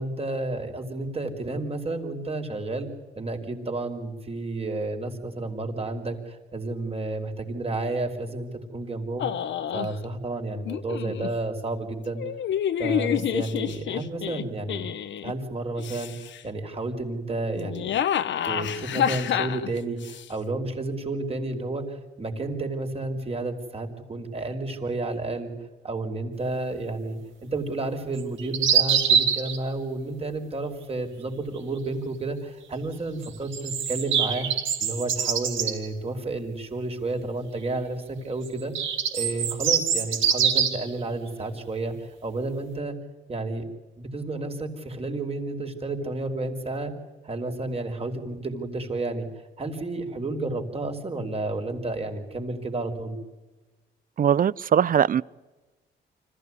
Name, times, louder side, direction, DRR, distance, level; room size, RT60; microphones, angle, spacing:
voice 1, 0.0-2.9 3.1-9.3 9.7-12.2 12.8-14.9 15.2-16.1 16.4-17.9 18.4-25.5 25.8-34.5 34.8-38.7 39.1-43.0 43.3-43.6 44.0-46.9 47.2-49.3 49.6-53.2, right 2 dB, 30° right, 4 dB, 5.1 m, -31 dB
sound 1, 9.2-9.9 10.7-11.3 12.2-15.3 15.8-16.4 17.6-20.2, left 10 dB, 70° left, 1.3 m, -28 dB
sound 2, 28.2-29.6 33.2-35.7 38.4-40.9, right 7 dB, 75° right, 4.7 m, -24 dB
voice 2, 54.2-55.2, right 8 dB, 45° right, 22 dB, 0.7 m, -20 dB
26.0 x 16.0 x 9.8 m, 1.2 s
cardioid pair, 90°, 20 cm